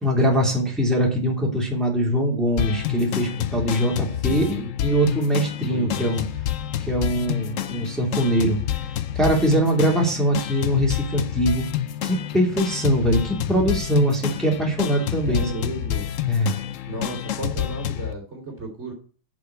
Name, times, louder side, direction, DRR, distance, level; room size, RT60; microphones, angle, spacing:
voice 1, 0.0-6.2 6.9-8.6 9.1-11.7 12.0-15.4 16.3-16.5, equal, ahead, -1 dB, 3.0 m, -22 dB
sound 1, 2.6-18.1, left 11 dB, 75° left, 0.7 m, -28 dB
voice 2, 4.3-4.7 5.7-6.2 15.2-16.1 16.9-18.9, right 2 dB, 35° right, 0 dB, 2.9 m, -33 dB
8.1 x 6.8 x 8.3 m, 0.41 s
omnidirectional pair, 2.2 m